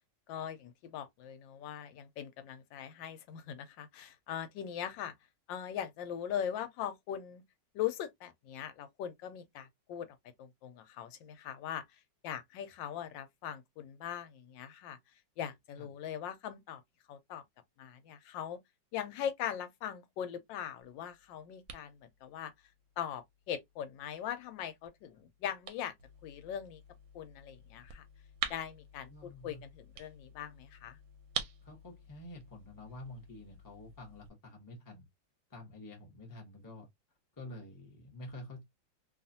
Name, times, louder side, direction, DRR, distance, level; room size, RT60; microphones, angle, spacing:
voice 1, 0.3-5.1 5.5-7.4 7.7-10.1 10.4-11.8 12.2-15.0 15.4-16.8 17.1-17.4 17.8-18.6 18.9-22.5 23.0-25.9 26.2-26.8 27.1-28.1 28.5-31.0, left 9 dB, 85° left, 1.3 m, -40 dB
sound 1, 20.8-34.3, right 7 dB, 70° right, 1.0 m, -47 dB
voice 2, 29.1-29.7 31.6-35.1 35.5-36.9 37.4-38.6, left 1 dB, 20° left, 0.6 m, -48 dB
3.0 x 2.4 x 2.5 m
omnidirectional pair, 2.0 m